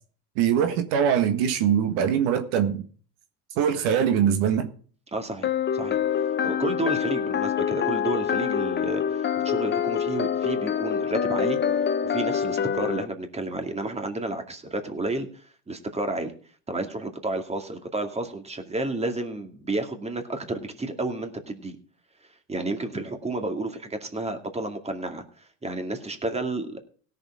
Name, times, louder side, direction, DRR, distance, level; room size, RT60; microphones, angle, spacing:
voice 1, 0.3-2.8 3.5-4.7, right 8 dB, 75° right, 1.6 m, -22 dB
voice 2, 5.1-6.0 6.4-11.6 12.0-16.3 16.7-21.8 22.5-25.2 25.6-26.8, right 2 dB, 15° right, 2.3 m, -31 dB
sound 1, 5.4-13.1, left 8 dB, 30° left, 0.8 m, -26 dB
17.0 x 6.8 x 4.8 m
supercardioid pair, 85°, 38 cm